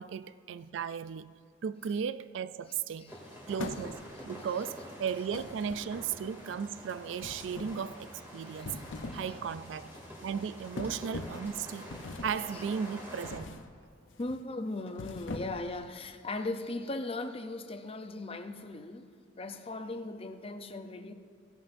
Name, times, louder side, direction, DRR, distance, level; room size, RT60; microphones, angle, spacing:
voice 1, 0.0-1.3 1.6-3.1 3.5-4.0 4.3-8.8 9.1-9.9 10.2-11.9 12.2-13.6, right 7 dB, 70° right, 0.3 m, -36 dB
sound 1, 3.1-13.4, equal, 10° right, 2.5 m, -47 dB
sound 2, 3.6-4.3 5.3-6.2 7.2-7.9 8.5-9.3 9.7-9.9 10.8-11.5 11.9-12.5 13.2-13.7 14.1-14.4 14.9-15.7, left 2 dB, 75° left, 0.7 m, -42 dB
voice 2, 14.2-19.1 19.4-21.1, left 2 dB, 30° left, 0.6 m, -38 dB
16.5 x 11.0 x 2.6 m
head